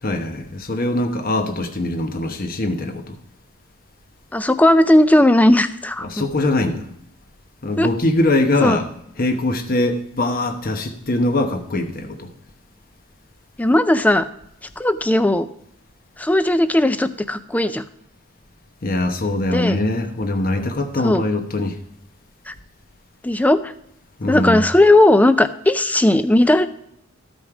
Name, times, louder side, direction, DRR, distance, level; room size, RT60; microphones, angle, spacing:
voice 1, 0.0-3.2 6.0-6.9 7.6-8.9 9.2-12.3 18.8-21.8 24.2-24.6, left 2 dB, 45° left, 1.0 m, -22 dB
voice 2, 4.3-6.1 7.8-7.9 8.6-8.8 13.6-14.3 14.8-15.5 16.2-17.8 19.5-19.8 21.0-21.2 22.5-22.6 23.2-23.7 24.3-26.7, left 1 dB, 5° left, 0.4 m, -16 dB
13.5 x 5.3 x 4.8 m
head